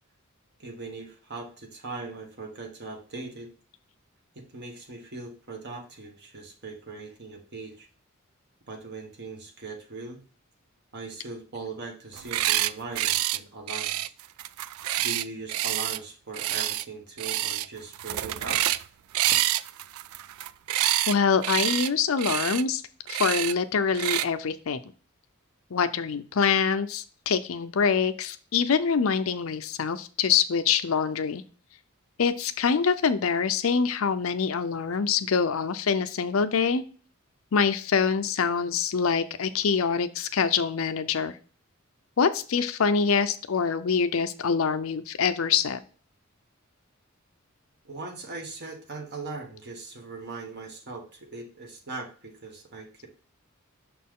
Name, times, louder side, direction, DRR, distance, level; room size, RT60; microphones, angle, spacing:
voice 1, 0.6-3.5 4.3-7.9 8.7-10.2 10.9-14.1 15.0-18.6 47.8-53.1, right 3 dB, 50° right, 3 dB, 1.4 m, -40 dB
sound 1, 12.1-12.7 13.0-13.4 13.7-16.0 16.3-16.8 17.2-17.7 17.9-18.8 19.1-21.1 21.4-21.9 22.2-22.6 23.1-23.5 23.9-24.3, right 14 dB, 90° right, 0.3 m, -27 dB
voice 2, 21.1-22.8 23.1-24.8 25.7-31.4 32.2-36.8 37.5-41.3 42.2-45.8, left 6 dB, 70° left, 11 dB, 0.5 m, -25 dB
6.3 x 4.3 x 3.7 m, 0.39 s
head